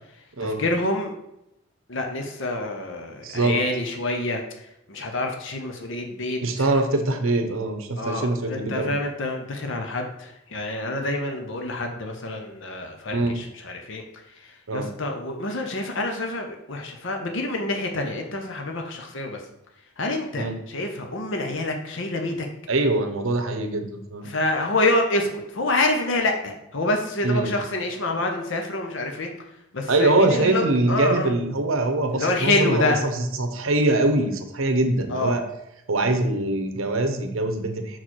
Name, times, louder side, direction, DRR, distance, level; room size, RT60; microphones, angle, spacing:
voice 1, 0.1-1.1 1.9-6.7 8.0-19.5 20.0-22.5 24.2-31.3 32.1-33.0 35.1-35.4, left 2 dB, 60° left, 3 dB, 0.8 m, -27 dB
voice 2, 3.2-3.6 6.4-8.9 13.1-13.4 14.7-14.9 20.4-20.5 22.7-24.3 27.2-27.5 29.9-33.1 33.4-35.4 35.9-38.0, right 2 dB, 70° right, 6 dB, 0.9 m, -23 dB
6.1 x 4.6 x 4.3 m, 0.83 s
head